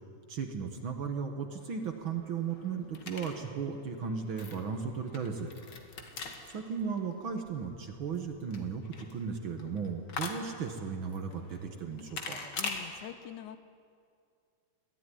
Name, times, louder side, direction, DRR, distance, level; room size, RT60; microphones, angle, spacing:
voice 1, 0.3-5.5 6.0-6.1 6.5-12.4, right 6 dB, 50° right, 5 dB, 1.7 m, -36 dB
sound 1, 1.6-12.8, left 4 dB, 40° left, 2.0 m, -44 dB
voice 2, 12.6-13.6, left 11 dB, 85° left, 12 dB, 2.3 m, -44 dB
21.5 x 15.0 x 10.0 m, 2.3 s
omnidirectional pair, 3.4 m